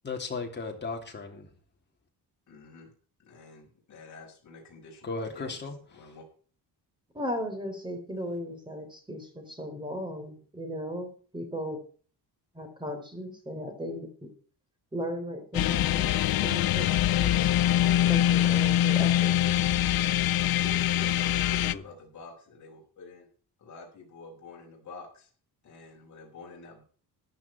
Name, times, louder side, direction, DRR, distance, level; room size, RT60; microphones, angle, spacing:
voice 1, 0.0-1.5 5.0-6.1 21.6-21.8, left 4 dB, 25° left, 3.0 m, -36 dB
voice 2, 2.5-2.9 3.2-5.6 5.9-6.2 20.6-23.3 23.6-25.3 25.6-26.8, left 3 dB, 45° left, 5.4 m, -47 dB
voice 3, 7.1-11.8 12.5-14.3 14.9-16.2 16.4-16.9 17.2-17.5 18.1-19.6, equal, 10° right, 3.8 m, -36 dB
sound 1, 15.5-21.7, left 12 dB, 60° left, 0.6 m, -24 dB
14.5 x 11.0 x 4.5 m
cardioid pair, 155°, 40 cm